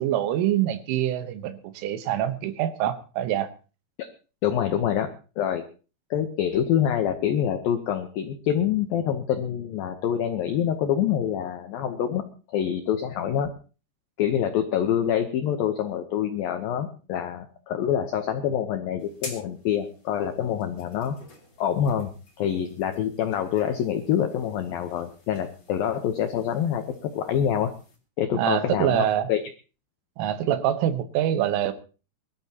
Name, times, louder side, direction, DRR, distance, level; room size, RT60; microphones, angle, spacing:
voice 1, 0.0-3.5 28.3-29.3 30.2-31.7, right 11 dB, 90° right, 10 dB, 3.7 m, -25 dB
voice 2, 4.4-5.1 5.4-5.6 6.1-12.2 12.5-13.5 14.2-21.2 21.6-22.1 22.4-27.7 28.2-29.4, left 9 dB, 85° left, 7 dB, 2.0 m, -26 dB
sound 1, 19.0-28.0, left 2 dB, 25° left, 3.3 m, -48 dB
23.5 x 13.0 x 2.9 m, 0.35 s
omnidirectional pair, 5.6 m